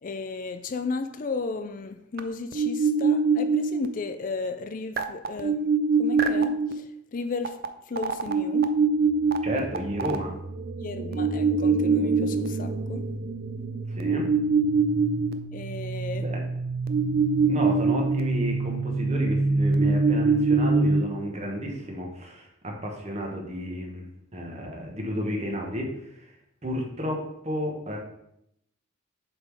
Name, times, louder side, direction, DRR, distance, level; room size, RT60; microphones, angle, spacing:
voice 1, 0.0-5.6 6.0-7.6 7.9-8.7 10.8-13.1 15.5-16.3, left 4 dB, 40° left, 0.4 m, -34 dB
sound 1, 2.2-2.3 2.5-3.9 5.0-6.7 7.5-7.7 8.0-21.0, right 4 dB, 50° right, 0.5 m, -24 dB
voice 2, 9.4-10.3 13.9-14.2 16.1-16.4 17.4-24.1 24.3-26.3 26.6-28.0, equal, 35° right, 1.4 m, -32 dB
7.4 x 3.8 x 4.7 m
head